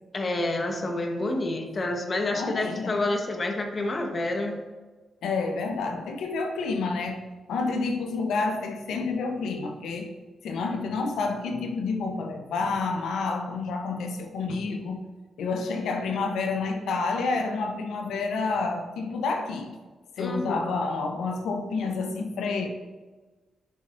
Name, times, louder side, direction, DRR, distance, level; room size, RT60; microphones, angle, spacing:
voice 1, 0.1-4.6 20.2-20.6, left 2 dB, 45° left, 4 dB, 1.2 m, -28 dB
voice 2, 2.3-3.0 5.2-7.2 7.5-10.1 10.4-15.1 15.4-19.8 20.2-22.7, left 4 dB, 85° left, 4 dB, 0.8 m, -29 dB
10.0 x 5.6 x 2.6 m, 1.3 s
supercardioid pair, 55°, 0 cm